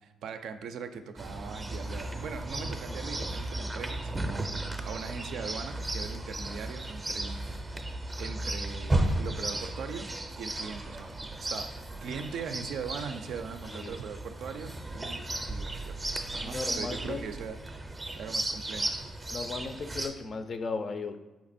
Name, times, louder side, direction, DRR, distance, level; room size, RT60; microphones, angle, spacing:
voice 1, 0.0-7.4 8.2-10.1 10.4-11.2 11.5-16.0 16.3-17.8 18.2-18.9, right 6 dB, 75° right, 8 dB, 0.4 m, -40 dB
Chirp tweet, 1.2-20.1, right 1 dB, 20° right, 0.5 m, -35 dB
voice 2, 16.4-17.3 19.3-21.2, left 4 dB, 45° left, 8 dB, 0.4 m, -36 dB
4.3 x 2.9 x 4.1 m, 1.1 s
cardioid pair, 90°, 0 cm